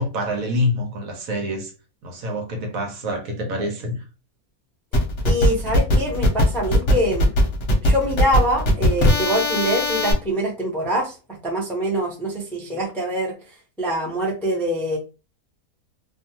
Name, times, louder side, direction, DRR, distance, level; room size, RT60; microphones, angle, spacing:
voice 1, 0.0-1.7 2.0-4.0, left 1 dB, 70° right, 1.1 m, -26 dB
sound 1, 4.9-10.1, equal, 55° left, 0.9 m, -19 dB
voice 2, 5.2-7.3 7.8-11.2 11.4-13.3 13.8-15.0, equal, ahead, 0.5 m, -24 dB
2.5 x 2.3 x 2.8 m
omnidirectional pair, 1.6 m